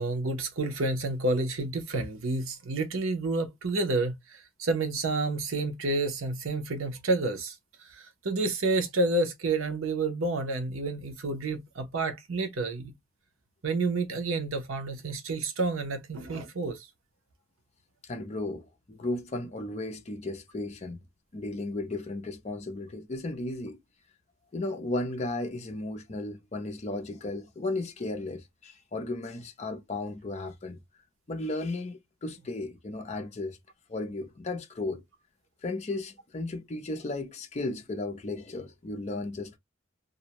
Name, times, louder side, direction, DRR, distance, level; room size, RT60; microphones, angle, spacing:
voice 1, 0.0-7.6 7.8-12.9 13.6-16.9, right 2 dB, 80° right, 0.7 m, -29 dB
voice 2, 18.0-21.0 21.3-23.8 24.5-30.8 31.3-33.6 33.9-35.0 35.6-39.6, left 2 dB, 30° left, 0.5 m, -35 dB
2.5 x 2.1 x 2.8 m
head